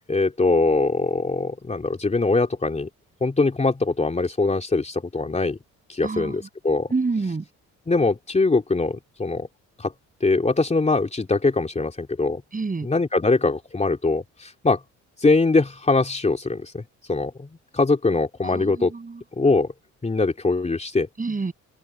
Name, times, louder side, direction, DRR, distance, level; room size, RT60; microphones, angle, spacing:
voice 1, 0.1-2.9 3.2-5.6 5.9-6.9 7.9-9.5 9.8-9.9 10.2-12.4 12.8-14.8 15.2-16.8 17.1-17.5 17.7-18.9 19.4-19.7 20.0-21.1, left 3 dB, 20° left, 3.2 m, -22 dB
voice 2, 6.0-6.4 6.9-7.4 12.5-12.9 18.5-19.2 21.2-21.5, right 4 dB, 25° right, 7.6 m, -27 dB
open air
cardioid pair, 90°, 30 cm